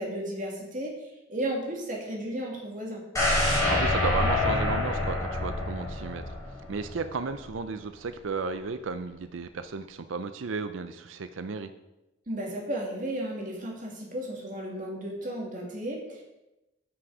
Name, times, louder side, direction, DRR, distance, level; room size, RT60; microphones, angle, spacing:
voice 1, 0.0-3.0 12.3-16.2, right 1 dB, 40° right, -1 dB, 2.4 m, -34 dB
sound 1, 3.2-7.1 7.5-7.6, left 2 dB, 15° left, 3.1 m, -27 dB
voice 2, 3.5-6.4 6.7-11.7, right 4 dB, 75° right, 10 dB, 0.5 m, -34 dB
13.0 x 6.2 x 4.8 m, 0.97 s
head